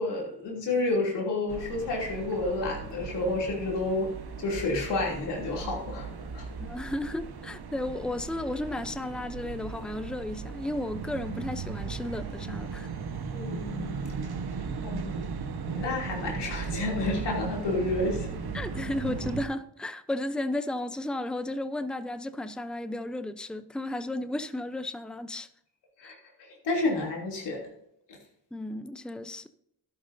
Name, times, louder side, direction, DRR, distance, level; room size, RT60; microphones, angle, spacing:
voice 1, 0.0-4.1 4.4-6.5 13.3-14.0 14.8-15.2 15.7-18.3 26.0-26.1 26.6-27.6, left 2 dB, 90° left, 3.2 m, -30 dB
sound 1, 1.5-19.5, right 5 dB, 65° right, 1.4 m, -37 dB
voice 2, 6.6-12.9 18.5-25.5 26.0-26.1 28.5-29.5, left 1 dB, ahead, 0.7 m, -34 dB
12.5 x 11.0 x 2.8 m
cardioid pair, 55°, 41 cm